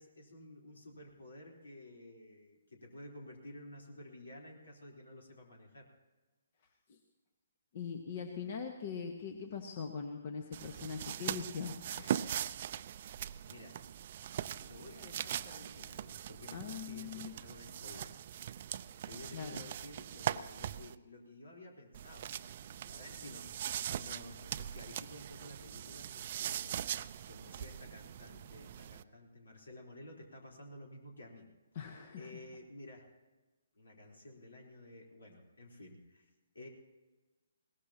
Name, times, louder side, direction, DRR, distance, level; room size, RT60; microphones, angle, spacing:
voice 1, 0.0-5.9 13.5-13.8 14.6-18.2 19.1-26.8 27.3-31.5 32.2-33.1 33.8-36.3 36.5-36.7, left 1 dB, 75° left, 0 dB, 3.9 m, -53 dB
voice 2, 7.7-12.2 16.5-17.4 19.3-19.6 31.7-32.3, left 6 dB, 45° left, 4 dB, 1.4 m, -42 dB
sound 1, 10.5-20.9 21.9-29.0, right 10 dB, 45° right, 0.5 m, -41 dB
21.5 x 18.5 x 2.9 m, 1.2 s
figure-of-eight pair, 135°, 0 cm